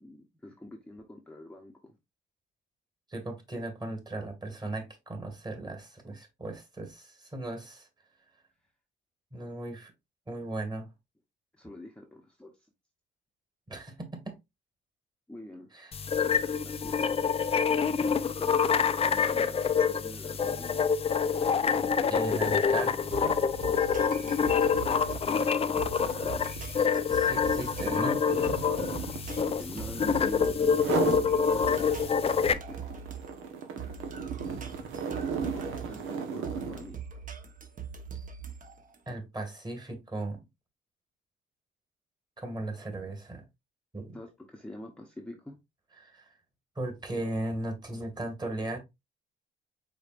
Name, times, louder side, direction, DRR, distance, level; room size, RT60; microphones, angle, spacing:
voice 1, 0.0-2.0 11.5-12.7 15.3-15.7 16.6-17.2 18.4-21.0 25.3-26.5 29.6-33.0 35.1-37.0 44.1-45.6, left 1 dB, 5° left, 0.8 m, -46 dB
voice 2, 3.1-7.9 9.3-9.9 10.3-10.9 13.7-14.3 15.7-15.9 21.4-21.7 22.1-23.6 27.1-28.6 29.2-29.4 39.1-40.4 42.4-43.4 43.9-44.1 46.0-46.3 46.8-48.8, right 2 dB, 20° right, 1.9 m, -37 dB
sound 1, 15.9-32.5, left 6 dB, 30° left, 0.4 m, -27 dB
sound 2, 21.3-21.5 21.8-30.3 30.7-31.3 31.7-36.9, right 6 dB, 85° right, 1.1 m, -36 dB
sound 3, 22.5-39.0, right 6 dB, 40° right, 1.1 m, -42 dB
5.1 x 4.1 x 2.5 m
cardioid pair, 90°, 20 cm